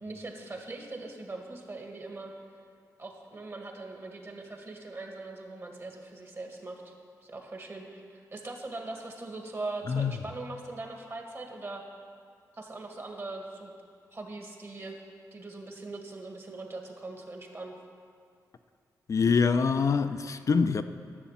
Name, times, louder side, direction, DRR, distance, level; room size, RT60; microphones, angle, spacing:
voice 1, 0.0-2.3 3.0-6.9 7.2-11.8 12.5-13.7 14.1-15.0 15.3-17.8, right 2 dB, 40° right, 1.8 m, -41 dB
voice 2, 19.1-20.8, left 5 dB, 50° left, 0.5 m, -25 dB
11.5 x 6.9 x 7.3 m
cardioid pair, 75°, 7 cm